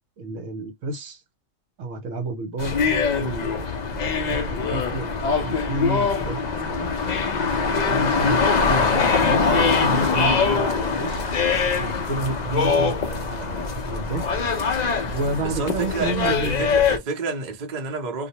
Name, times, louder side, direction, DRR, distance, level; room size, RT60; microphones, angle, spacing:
voice 1, 0.2-1.2 1.8-3.7 4.0-5.2 5.4-6.9 7.6-11.2 11.7-14.2 15.1-16.8, right 2 dB, 70° right, 1.0 m, -31 dB
sound 1, 2.6-17.0, left 5 dB, 85° left, 0.3 m, -23 dB
voice 2, 15.4-18.3, right 4 dB, 45° right, 0.7 m, -30 dB
2.5 x 2.1 x 2.7 m
omnidirectional pair, 1.4 m